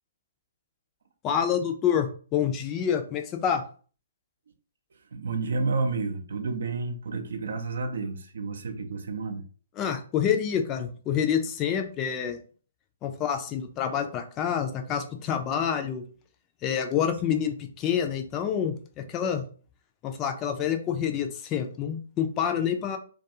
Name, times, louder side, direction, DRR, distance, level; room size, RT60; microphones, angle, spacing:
voice 1, 1.2-3.6 9.8-12.4 13.0-16.0 16.6-19.4 20.0-23.0, left 8 dB, 25° left, 0.4 m, -27 dB
voice 2, 5.1-9.5, right 3 dB, 65° right, 0.5 m, -30 dB
2.3 x 2.3 x 2.7 m
figure-of-eight pair, 130°, 0 cm